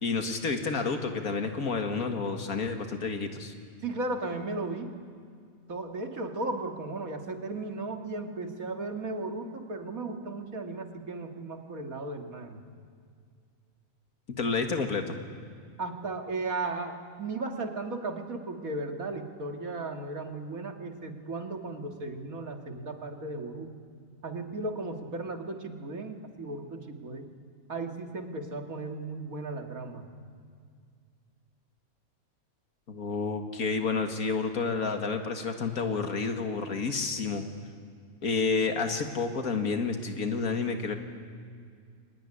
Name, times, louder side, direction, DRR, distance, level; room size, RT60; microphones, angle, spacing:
voice 1, 0.0-3.5 14.4-15.2 32.9-37.5 38.2-41.0, left 4 dB, 85° left, 5 dB, 2.3 m, -30 dB
voice 2, 3.8-4.9 5.7-12.6 15.8-23.7 24.2-27.3 27.7-30.1, right 2 dB, 75° right, 4 dB, 2.5 m, -36 dB
24.0 x 19.5 x 10.0 m, 2.1 s
omnidirectional pair, 1.5 m